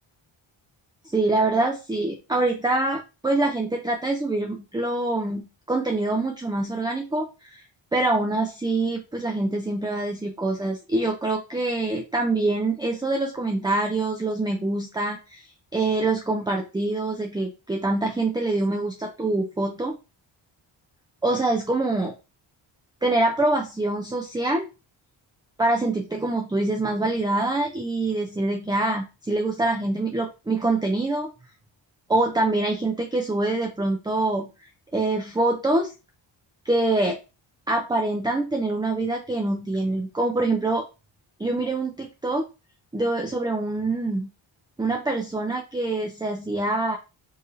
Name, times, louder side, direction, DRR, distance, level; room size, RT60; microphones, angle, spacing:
voice 1, 1.0-7.6 7.9-15.4 15.7-20.0 21.2-22.1 23.0-24.7 25.6-31.3 32.1-34.5 34.9-35.9 36.7-37.2 37.7-40.8 41.4-42.4 42.9-44.3 44.8-47.0, right 2 dB, 10° right, 3 dB, 0.5 m, -25 dB
4.6 x 2.7 x 3.2 m, 0.28 s
wide cardioid pair, 125°, 48 cm